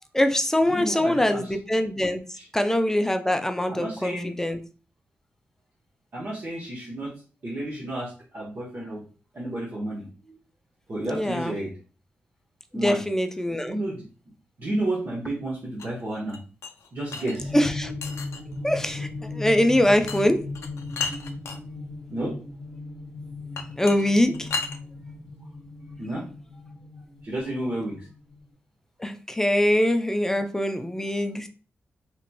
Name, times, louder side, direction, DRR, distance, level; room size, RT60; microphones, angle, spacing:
voice 1, 0.1-2.2 2.5-4.6 11.0-11.5 12.7-13.8 17.5-17.9 18.6-20.4 23.8-24.5 29.0-31.5, left 1 dB, 10° left, 7 dB, 0.4 m, -23 dB
voice 2, 0.7-1.5 2.3-2.5 3.7-4.3 6.1-7.1 7.4-9.0 9.3-10.4 10.9-11.7 12.7-13.0 13.7-14.0 14.6-16.4 16.9-17.5 22.1-22.4 26.0-26.2 27.2-28.0, right 1 dB, 50° right, -5 dB, 1.0 m, -31 dB
sound 1, 15.8-17.4 18.0-18.6 20.1-20.2 20.5-21.6 23.6-24.8, left 5 dB, 85° left, 0.4 m, -33 dB
sound 2, 17.4-28.5, left 2 dB, 20° right, 1.3 m, -37 dB
2.9 x 2.8 x 2.2 m, 0.36 s
cardioid pair, 70°, 5 cm